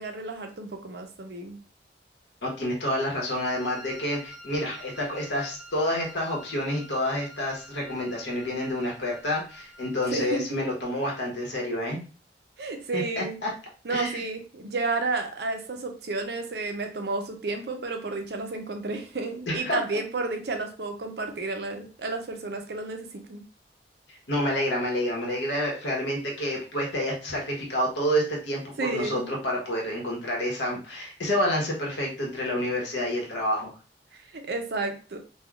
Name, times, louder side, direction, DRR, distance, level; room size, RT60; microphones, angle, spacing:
voice 1, 0.0-1.6 10.1-10.6 12.6-13.4 13.8-23.4 28.8-29.3 34.1-35.2, right 3 dB, 65° right, 5 dB, 0.5 m, -32 dB
voice 2, 2.4-12.0 12.9-13.5 13.9-14.2 19.5-19.8 24.1-33.7, left 1 dB, 90° left, -2 dB, 1.1 m, -28 dB
Wind instrument woodwind instrument, 3.3-10.1, equal, 5° right, 0.3 m, -48 dB
3.4 x 2.2 x 2.3 m, 0.37 s
head